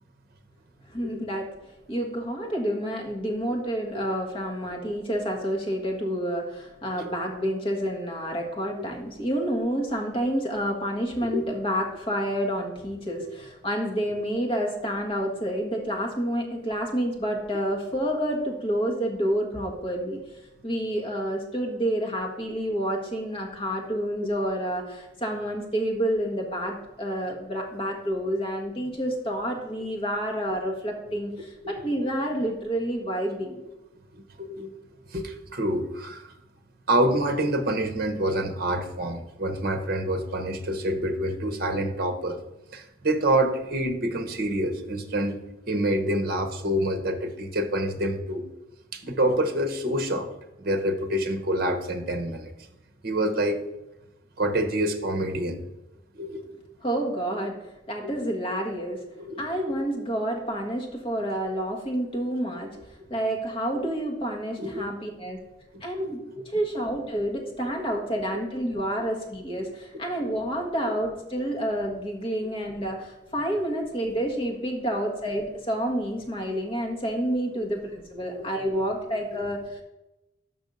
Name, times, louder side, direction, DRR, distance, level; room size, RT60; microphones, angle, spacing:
voice 1, 0.9-1.5 1.9-20.2 20.6-33.6 56.8-57.6 57.9-59.0 59.4-62.7 63.1-65.4 65.8-79.8, equal, 30° left, 0 dB, 1.4 m, -29 dB
voice 2, 34.1-34.7 35.1-36.3 36.9-42.4 42.7-45.4 45.7-48.4 48.9-50.3 50.6-52.5 53.0-53.6 54.4-55.6 56.1-56.4 58.0-58.1 59.2-59.4 59.7-59.8 64.6-64.9 66.0-66.2 68.3-68.4 70.2-70.3 78.4-78.5 78.8-78.9, right 1 dB, 50° right, 7 dB, 0.9 m, -27 dB
6.1 x 5.5 x 5.3 m, 0.95 s
head